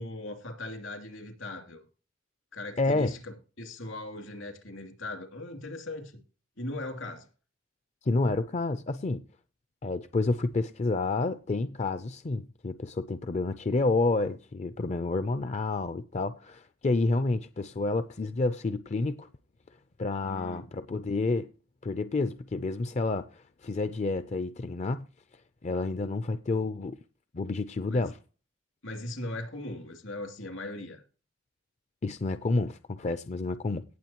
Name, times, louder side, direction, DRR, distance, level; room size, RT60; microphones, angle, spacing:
voice 1, 0.0-1.8 2.5-6.2 6.6-7.3 20.2-20.7 27.9-28.1 28.8-31.0, left 1 dB, 75° left, 2.8 m, -39 dB
voice 2, 2.8-3.1 8.0-9.2 9.8-19.3 20.0-21.5 21.8-25.1 25.6-27.0 27.3-28.2 32.0-33.8, left 3 dB, 35° left, 0.4 m, -29 dB
18.0 x 7.6 x 2.9 m
head